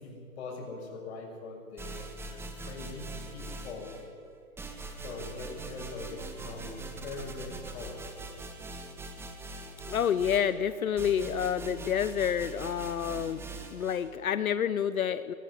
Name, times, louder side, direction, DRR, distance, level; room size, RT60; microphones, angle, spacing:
voice 1, 0.0-4.0 5.0-8.0, left 3 dB, 45° left, -1 dB, 6.7 m, -42 dB
sound 1, 1.8-4.1 4.6-14.1, right 3 dB, 5° right, 1.4 m, -42 dB
voice 2, 9.9-13.4 13.7-15.3, left 8 dB, 70° left, 13 dB, 0.9 m, -29 dB
20.0 x 15.5 x 9.8 m, 2.2 s
hypercardioid pair, 140°, 43 cm